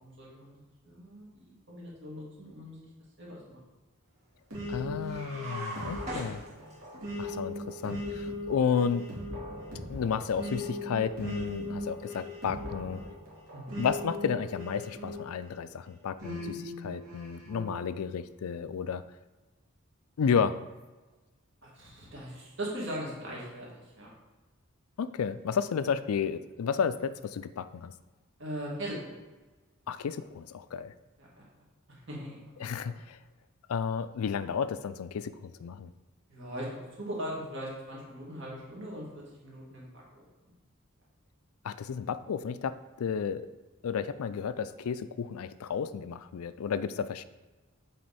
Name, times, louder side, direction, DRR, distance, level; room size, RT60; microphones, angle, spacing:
voice 1, 0.0-0.6 0.8-2.8 3.2-3.6 13.5-13.8 21.6-24.1 28.4-29.0 31.2-31.4 31.9-33.0 36.3-40.3, equal, 55° right, -4 dB, 2.2 m, -40 dB
sound 1, 4.5-15.6 16.2-17.7, left 1 dB, 80° right, 2.4 m, -39 dB
voice 2, 4.7-6.4 7.2-9.1 9.9-13.0 13.8-19.0 20.2-20.6 25.0-27.9 29.9-30.9 32.6-33.2 33.7-35.9 41.6-43.5 43.8-47.2, left 6 dB, 85° left, 14 dB, 0.4 m, -32 dB
sound 2, 5.0-7.0, right 2 dB, 30° right, 1.7 m, -40 dB
7.6 x 4.4 x 4.2 m, 1.2 s
head